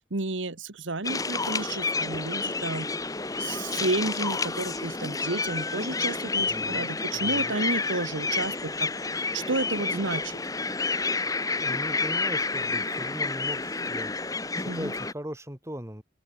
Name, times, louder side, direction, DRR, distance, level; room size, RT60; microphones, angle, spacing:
voice 1, 0.1-2.9 3.4-8.9 9.3-10.3 14.7-14.9, right 2 dB, 90° right, 1.7 m, -31 dB
sound 1, 1.0-15.1, left 3 dB, 20° left, 1.2 m, -29 dB
voice 2, 6.4-7.5 11.6-16.0, equal, 15° right, 3.4 m, -39 dB
open air
head